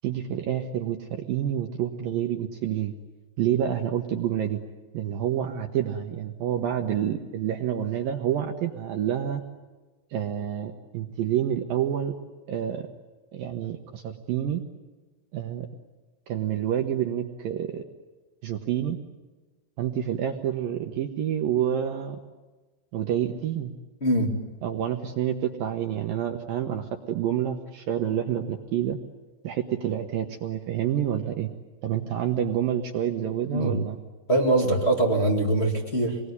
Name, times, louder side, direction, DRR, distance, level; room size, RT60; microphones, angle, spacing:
voice 1, 0.0-2.9 3.4-4.6 4.9-9.4 10.1-12.1 12.5-12.9 13.3-14.6 15.3-15.7 16.3-17.8 18.4-19.0 19.8-22.2 22.9-23.7 24.6-29.0 29.4-31.5 31.8-34.0, right 10 dB, 75° right, 4 dB, 2.1 m, -28 dB
voice 2, 24.0-24.4 33.5-33.7 34.3-36.2, right 1 dB, 30° left, 1 dB, 1.2 m, -23 dB
27.0 x 21.0 x 9.8 m, 1.2 s
omnidirectional pair, 5.7 m